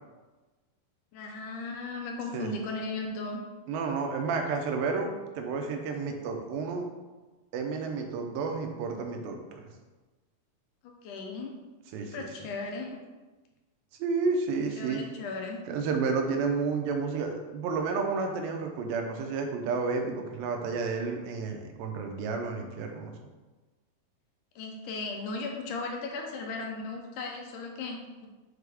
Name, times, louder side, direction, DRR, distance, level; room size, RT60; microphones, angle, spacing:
voice 1, 1.1-3.4 10.8-11.5 12.1-13.0 14.8-15.6 24.6-28.3, left 3 dB, 75° left, 1 dB, 2.1 m, -36 dB
voice 2, 3.7-5.1 5.4-6.9 7.5-9.7 11.9-12.3 14.0-15.0 15.7-23.1, right 4 dB, 85° right, 4 dB, 2.5 m, -31 dB
6.4 x 4.6 x 3.4 m, 1.2 s
omnidirectional pair, 4.0 m